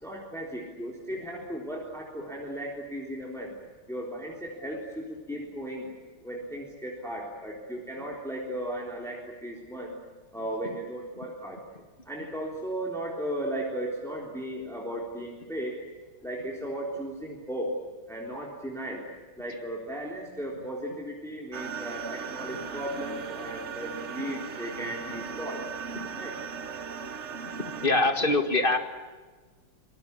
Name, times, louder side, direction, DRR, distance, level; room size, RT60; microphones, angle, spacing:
voice 1, 0.0-3.6 3.9-6.0 6.2-10.0 10.3-11.6 12.1-15.8 16.2-17.8 18.1-19.1 19.4-25.7 26.2-26.4, right 1 dB, ahead, -2 dB, 3.7 m, -36 dB
sound 1, 21.5-27.9, right 6 dB, 45° right, 1.2 m, -37 dB
voice 2, 27.4-28.8, left 2 dB, 25° left, 7 dB, 2.0 m, -25 dB
26.5 x 20.5 x 8.5 m, 1.4 s
omnidirectional pair, 2.1 m